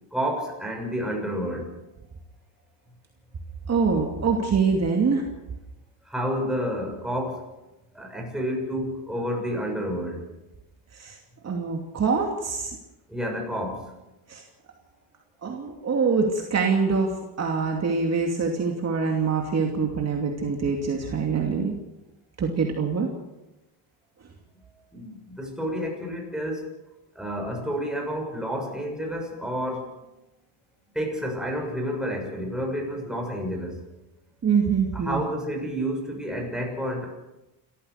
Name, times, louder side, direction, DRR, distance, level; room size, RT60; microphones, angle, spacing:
voice 1, 0.1-1.7 6.1-7.4 7.9-10.3 13.1-13.9 24.9-26.7 27.2-29.9 30.9-33.8 34.9-37.1, equal, ahead, 1 dB, 6.9 m, -30 dB
voice 2, 3.7-5.2 10.9-11.2 11.4-12.8 14.3-14.4 15.4-21.7 22.4-23.1 34.4-35.2, right 5 dB, 40° right, 1 dB, 2.7 m, -24 dB
29.0 x 14.5 x 6.6 m, 1.0 s
cardioid pair, 115°, 41 cm